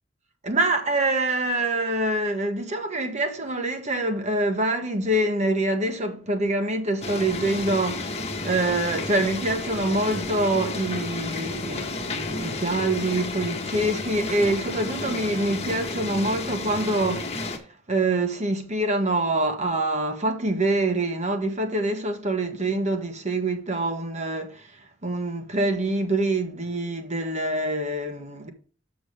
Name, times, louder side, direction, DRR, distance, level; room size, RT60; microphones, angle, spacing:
voice 1, 0.4-17.6 17.9-24.7 25.0-28.5, right 2 dB, 40° right, 1.3 m, -25 dB
sound 1, 7.0-17.6, left 3 dB, 35° left, 1.4 m, -31 dB
6.9 x 6.2 x 5.0 m
head